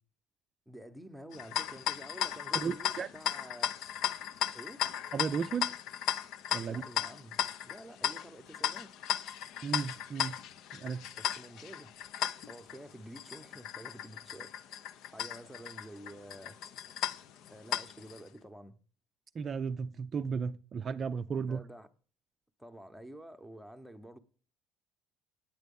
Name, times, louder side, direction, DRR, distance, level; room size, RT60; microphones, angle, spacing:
voice 1, 0.7-3.7 4.5-4.8 6.6-7.4 7.6-8.9 11.2-11.9 12.2-16.6 17.5-18.8 21.3-21.9 22.6-24.2, right 1 dB, ahead, 0.9 m, -50 dB
sound 1, 1.3-18.2, left 10 dB, 60° left, 0.6 m, -36 dB
voice 2, 2.5-3.1 5.1-5.7 6.5-6.8 9.6-10.4 10.7-11.1 19.3-21.6, right 6 dB, 30° right, 0.4 m, -34 dB
9.1 x 9.1 x 5.4 m
cardioid pair, 145°, 0 cm